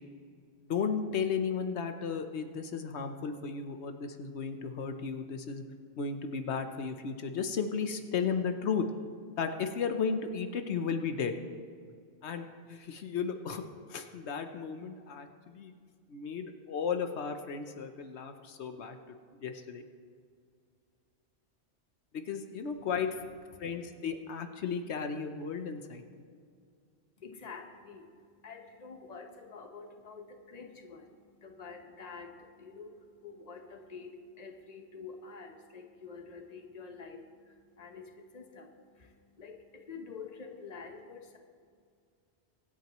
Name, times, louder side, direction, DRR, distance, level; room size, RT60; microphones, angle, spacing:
voice 1, 0.7-5.6 6.0-8.8 9.4-11.4 12.2-13.6 13.9-15.7 16.1-19.0 19.4-19.8 22.1-23.2 23.6-26.0, left 6 dB, 80° left, 7 dB, 1.1 m, -34 dB
voice 2, 27.2-41.4, left 5 dB, 40° left, 4 dB, 1.1 m, -48 dB
24.0 x 8.6 x 3.0 m, 2.2 s
omnidirectional pair, 1.1 m